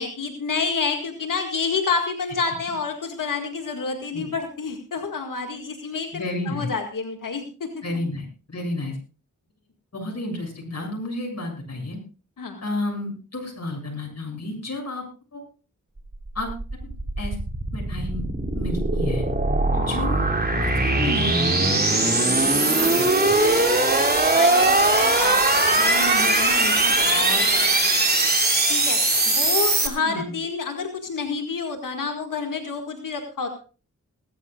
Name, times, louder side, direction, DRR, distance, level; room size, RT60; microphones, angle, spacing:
voice 1, 0.0-7.7 12.4-12.6 19.7-19.9 22.4-22.8 24.3-28.2 28.7-29.0 29.3-33.5, left 4 dB, 75° left, 4 dB, 2.0 m, -29 dB
voice 2, 6.1-6.7 7.8-9.0 9.9-12.0 12.6-15.0 15.3-15.4 16.3-16.8 17.2-17.4 17.7-18.2 18.5-19.3 19.8-20.3 20.6-22.1 22.8-23.3 29.8-30.3, left 2 dB, 55° left, 0 dB, 7.5 m, -31 dB
sound 1, 16.1-29.9, right 2 dB, 30° right, 3.0 m, -20 dB
20.5 x 13.5 x 2.4 m, 0.35 s
cardioid pair, 55°, 32 cm